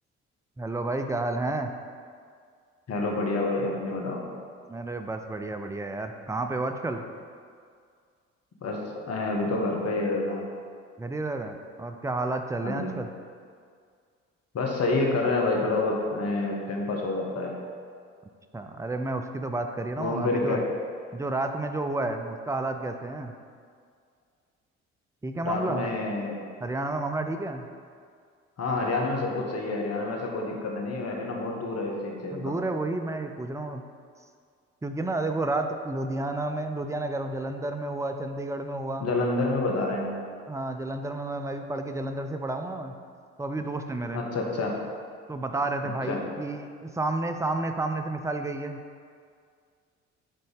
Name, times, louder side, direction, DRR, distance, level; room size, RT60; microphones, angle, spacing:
voice 1, 0.6-1.7 4.7-7.0 11.0-13.1 18.5-20.6 21.1-23.3 25.2-25.9 26.6-27.7 32.3-33.8 34.8-39.1 40.5-42.9 43.4-44.2 45.3-48.8, right 2 dB, 10° right, 6 dB, 0.5 m, -31 dB
voice 2, 2.9-4.2 8.6-10.4 12.6-12.9 14.5-17.5 20.0-20.6 25.4-26.4 28.6-32.5 39.0-40.1 44.1-44.7 46.1-46.2, left 2 dB, 45° left, 0 dB, 1.4 m, -28 dB
8.4 x 3.9 x 3.6 m, 2.1 s
hypercardioid pair, 50°, 35 cm